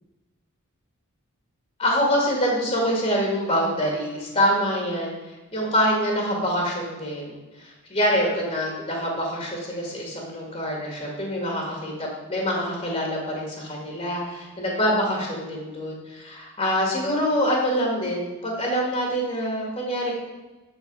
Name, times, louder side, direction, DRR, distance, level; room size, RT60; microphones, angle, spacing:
voice 1, 1.8-5.1 5.5-20.1, equal, 25° left, -1 dB, 2.0 m, -25 dB
12.0 x 4.4 x 5.4 m, 1.1 s
head